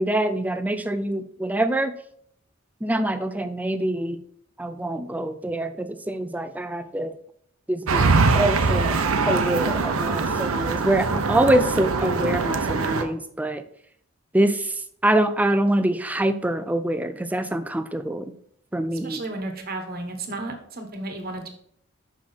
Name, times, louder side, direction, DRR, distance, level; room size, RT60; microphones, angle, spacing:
voice 1, 0.0-1.9 2.8-4.2 4.6-7.2 7.7-8.1 8.3-9.0 9.3-13.6 14.3-18.3 18.7-19.2, right 1 dB, 5° right, 10 dB, 0.3 m, -25 dB
sound 1, 7.9-13.0, right 4 dB, 85° right, 0.8 m, -22 dB
voice 2, 19.0-21.5, right 2 dB, 45° right, 4 dB, 1.2 m, -33 dB
6.1 x 5.7 x 4.3 m, 0.67 s
head